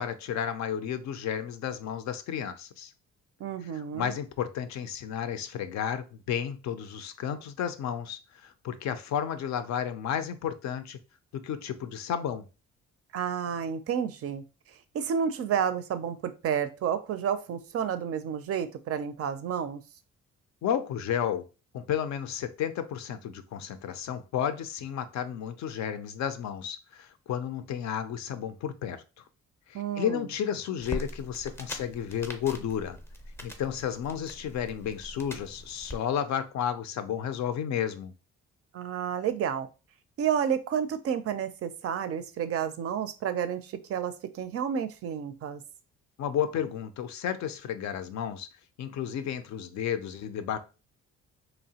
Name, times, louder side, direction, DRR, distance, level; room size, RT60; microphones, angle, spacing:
voice 1, 0.0-2.9 3.7-11.0 11.3-12.5 20.6-21.5 21.7-29.0 29.7-33.0 33.4-38.1 46.2-48.5 48.8-50.6, left 9 dB, 65° left, 0.4 m, -32 dB
voice 2, 3.4-4.2 13.1-14.4 14.9-19.8 29.7-30.3 38.7-39.7 40.2-45.6, right 8 dB, 50° right, 0.4 m, -30 dB
sound 1, 30.8-36.0, left 1 dB, 10° left, 0.5 m, -42 dB
2.9 x 2.0 x 2.7 m
cardioid pair, 90°, 30 cm